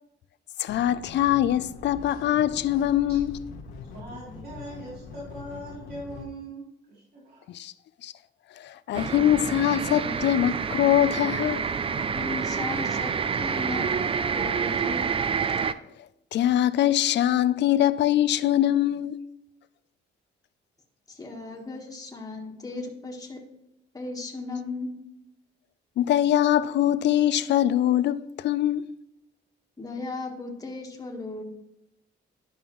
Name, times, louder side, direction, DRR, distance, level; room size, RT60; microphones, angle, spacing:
voice 1, 0.6-3.3 7.5-7.7 8.0-8.1 8.6-11.6 16.3-19.2 26.0-28.9, left 12 dB, 60° left, 0.4 m, -23 dB
sound 1, 0.7-6.3, left 4 dB, 90° left, 1.2 m, -43 dB
voice 2, 3.9-7.4, right 1 dB, 50° right, 3.1 m, -41 dB
sound 2, 8.9-15.7, right 6 dB, 30° right, 0.4 m, -28 dB
voice 3, 11.9-13.9 14.3-15.1 21.1-23.4 23.9-24.9 29.8-31.4, left 3 dB, 20° left, 1.5 m, -36 dB
11.0 x 5.3 x 3.1 m
cardioid pair, 90°, 20 cm